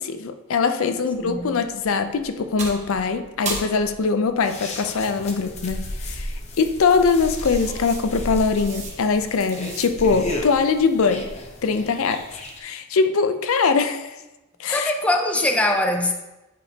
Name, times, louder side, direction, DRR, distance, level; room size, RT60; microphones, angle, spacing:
voice 1, 0.0-11.3 11.6-12.2 12.6-14.2 14.6-14.9, left 4 dB, 75° left, 8 dB, 0.5 m, -22 dB
voice 2, 1.0-1.6 14.7-16.1, left 1 dB, 5° left, 3 dB, 0.5 m, -22 dB
sound 1, 1.1-10.2, right 3 dB, 35° right, 1.0 m, -39 dB
sound 2, 4.4-12.6, left 1 dB, 30° left, 0.8 m, -34 dB
8.4 x 5.2 x 2.8 m, 1.0 s
head